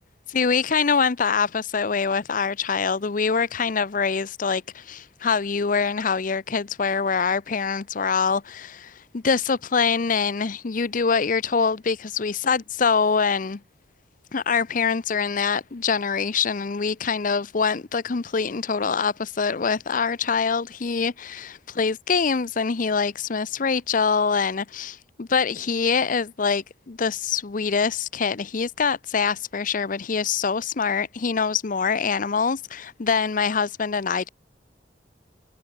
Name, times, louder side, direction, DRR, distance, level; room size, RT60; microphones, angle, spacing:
voice 1, 0.3-13.6 14.3-34.3, left 5 dB, 45° left, 0.6 m, -24 dB
head